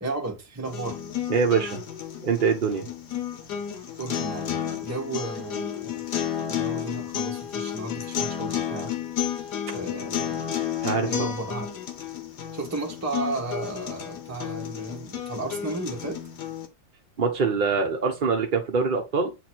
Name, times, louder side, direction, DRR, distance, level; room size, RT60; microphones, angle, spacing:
voice 1, 0.0-1.0 4.0-6.0 6.5-8.9 9.7-10.4 11.0-11.7 12.5-16.2, right 3 dB, 10° right, 1.2 m, -34 dB
sound 1, 0.7-16.7, left 9 dB, 85° left, 1.7 m, -32 dB
voice 2, 1.3-1.8 2.2-2.9 10.8-11.3 17.2-19.3, right 5 dB, 40° right, 0.8 m, -24 dB
8.0 x 3.1 x 4.3 m
omnidirectional pair, 1.7 m